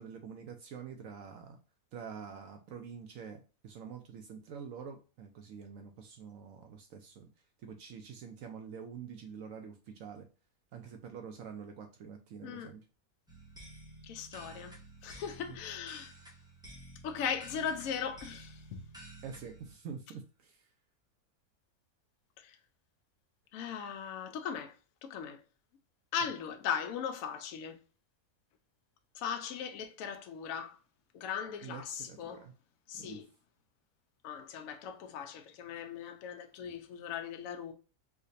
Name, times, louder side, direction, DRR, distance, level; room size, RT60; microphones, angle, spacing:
voice 1, 0.0-1.6 1.9-7.3 7.6-10.3 10.7-12.8 15.5-15.6 19.2-20.6 31.6-32.5 32.9-33.2, right 6 dB, 70° right, 0.8 m, -46 dB
voice 2, 12.4-12.7 14.0-14.8 15.0-16.1 17.0-18.8 22.4-22.5 23.5-24.7 25.0-25.4 26.1-27.8 29.2-30.8 31.1-32.4 32.9-33.3 34.2-37.7, left 7 dB, 65° left, 0.9 m, -38 dB
sound 1, 13.3-19.7, right 2 dB, 5° right, 0.6 m, -52 dB
4.8 x 2.2 x 2.6 m
omnidirectional pair, 1.7 m